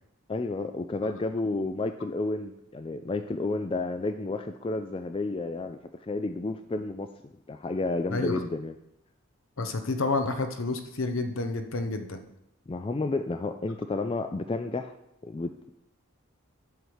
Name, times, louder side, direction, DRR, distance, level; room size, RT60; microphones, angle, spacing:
voice 1, 0.3-8.7 12.7-14.9 15.2-15.7, left 3 dB, 25° left, 8 dB, 0.3 m, -31 dB
voice 2, 8.1-8.4 9.6-12.2, left 3 dB, 70° left, 7 dB, 0.9 m, -29 dB
8.1 x 5.7 x 4.8 m, 0.84 s
head